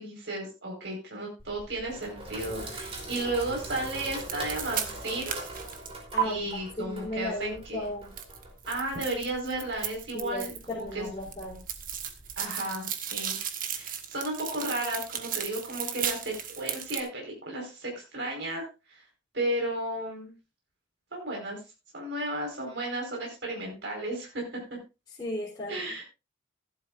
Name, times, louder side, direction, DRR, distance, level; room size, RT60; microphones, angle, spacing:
voice 1, 0.0-5.4 6.2-7.9 8.7-11.1 12.4-13.4 13.6-19.0 19.3-20.3 21.1-21.6 21.9-24.8 25.7-26.0, right 1 dB, 65° right, -1 dB, 4.7 m, -34 dB
Sink (filling or washing), 1.4-12.4, right 2 dB, 30° right, 3.5 m, -43 dB
sound 1, 3.9-6.2 8.2-10.8 11.1-17.0, right 9 dB, 45° right, 1.4 m, -35 dB
voice 2, 6.8-8.1 10.1-11.6 25.2-26.0, left 1 dB, 20° left, -6 dB, 3.4 m, -35 dB
15.5 x 11.5 x 2.5 m, 0.28 s
head